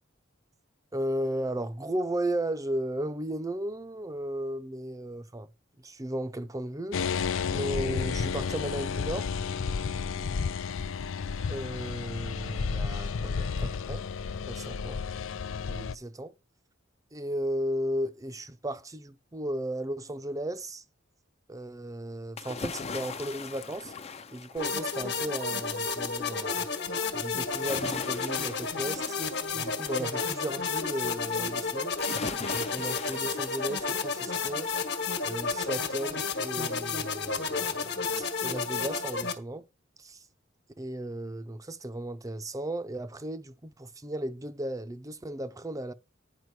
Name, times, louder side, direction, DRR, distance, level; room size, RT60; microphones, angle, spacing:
voice 1, 0.9-5.5 5.8-9.3 11.5-14.0 14.5-15.0 15.7-16.3 17.1-20.8 21.5-23.9 24.3-26.7 27.1-29.2 29.5-32.0 32.5-34.7 35.2-39.6 40.0-40.2 40.8-45.9, right 1 dB, 15° right, 0.6 m, -35 dB
sound 1, 6.9-15.9, left 5 dB, 80° left, 0.5 m, -32 dB
sound 2, 22.4-25.2 27.5-30.1 32.0-34.3 34.7-34.8, left 4 dB, 30° left, 0.5 m, -40 dB
sound 3, 24.6-39.3, left 4 dB, 60° left, 1.3 m, -31 dB
9.5 x 5.0 x 4.7 m
head